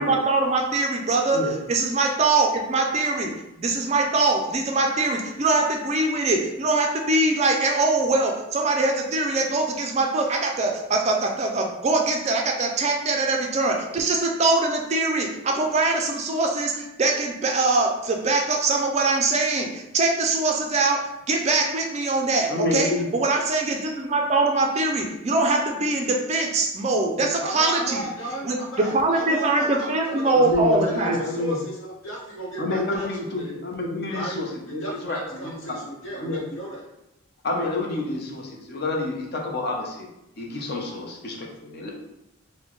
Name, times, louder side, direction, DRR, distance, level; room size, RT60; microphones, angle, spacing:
voice 1, 0.0-3.3 3.6-28.0 28.5-28.6 28.9-31.2, right 3 dB, 30° right, 2 dB, 0.3 m, -23 dB
voice 2, 22.5-23.1 30.3-31.6 32.6-35.8 36.2-36.4 37.4-40.1 40.4-41.9, left 2 dB, 45° left, 0 dB, 0.6 m, -28 dB
voice 3, 27.2-33.6 34.1-34.4 34.7-36.8, right 1 dB, 70° left, -4 dB, 1.0 m, -35 dB
4.3 x 2.1 x 3.0 m, 0.88 s
head